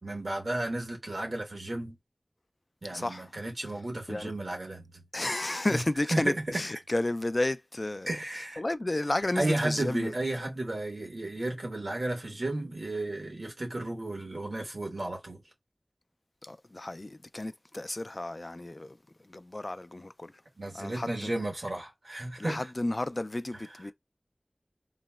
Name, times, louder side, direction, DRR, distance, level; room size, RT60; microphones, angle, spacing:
voice 1, 0.0-2.0 2.8-4.8 5.7-5.8 6.1-6.3 8.1-8.6 9.3-15.4 20.6-22.6, right 2 dB, 85° right, 1.1 m, -33 dB
voice 2, 2.9-3.3 4.1-4.3 5.1-10.1 16.4-19.0 19.2-20.3 20.7-21.3 22.4-23.9, left 2 dB, 50° left, 0.3 m, -32 dB
3.9 x 2.0 x 2.2 m
wide cardioid pair, 45°, 0 cm